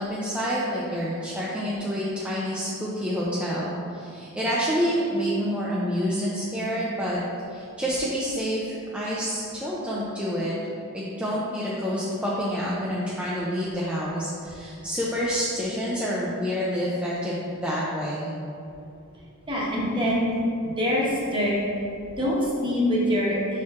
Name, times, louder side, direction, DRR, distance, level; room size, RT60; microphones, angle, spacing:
voice 1, 0.0-7.2 7.5-10.5 10.9-18.3, equal, 5° right, -8 dB, 0.6 m, -28 dB
voice 2, 19.5-20.3 20.8-21.0 21.3-21.6 22.2-23.4, equal, 25° right, -5 dB, 1.2 m, -24 dB
5.9 x 4.4 x 3.7 m, 2.6 s
head